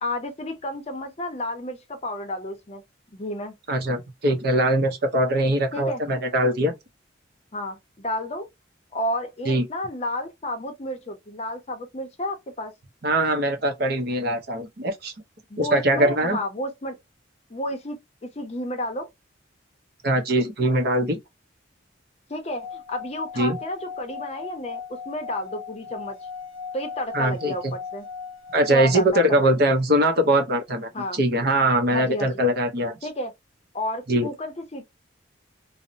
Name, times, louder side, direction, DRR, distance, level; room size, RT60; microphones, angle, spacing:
voice 1, 0.0-2.8 3.1-3.5 5.7-6.0 7.5-8.5 8.9-12.7 15.5-17.0 17.5-19.1 22.3-26.2 26.7-28.1 28.7-29.2 30.9-31.2 31.9-32.3 33.0-33.3 33.7-34.9, left 1 dB, 35° left, 0.6 m, -31 dB
voice 2, 3.7-6.7 9.5-9.6 13.0-15.1 15.6-16.4 20.0-21.2 23.4-23.6 27.1-27.5 28.5-33.0 34.1-34.3, right 1 dB, 55° right, 0.7 m, -22 dB
Singing / Glass, 22.5-29.1, left 6 dB, 75° left, 0.4 m, -38 dB
2.7 x 2.0 x 2.5 m
head